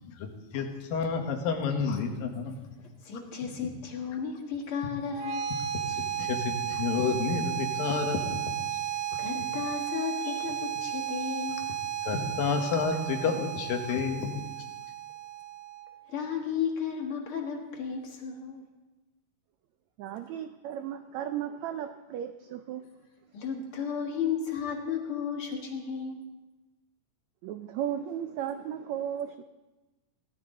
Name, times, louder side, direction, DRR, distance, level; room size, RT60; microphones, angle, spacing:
voice 1, 0.0-2.6 5.9-8.8 10.3-10.4 12.0-14.4, left 5 dB, 90° left, 4 dB, 3.1 m, -30 dB
voice 2, 3.0-5.5 9.2-11.6 16.1-18.6 23.3-26.2, left 7 dB, 45° left, 2 dB, 2.1 m, -34 dB
sound 1, 5.0-16.0, right 10 dB, 65° right, 1.8 m, -34 dB
voice 3, 20.0-22.8 27.4-29.4, right 10 dB, 90° right, 9 dB, 1.6 m, -35 dB
18.0 x 13.0 x 3.8 m, 1.1 s
omnidirectional pair, 3.9 m